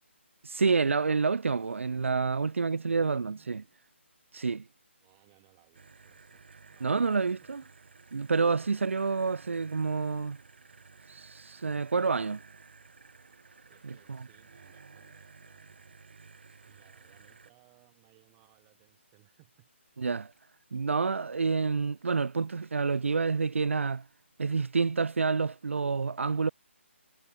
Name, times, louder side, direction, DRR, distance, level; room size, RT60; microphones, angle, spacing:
voice 1, 0.4-3.6 4.3-4.7 6.8-7.6 8.1-10.4 11.1-12.4 13.8-14.2 20.0-20.3 20.7-24.0 24.4-26.5, right 4 dB, 75° right, 0.7 m, -28 dB
voice 2, 2.9-3.7 5.0-7.2 8.5-8.9 13.6-16.0 16.7-20.1, right 40 dB or more, 10° right, 7.3 m, -64 dB
sound 1, 5.7-17.5, right 5 dB, 55° right, 4.1 m, -54 dB
hypercardioid pair, 175°, 7 cm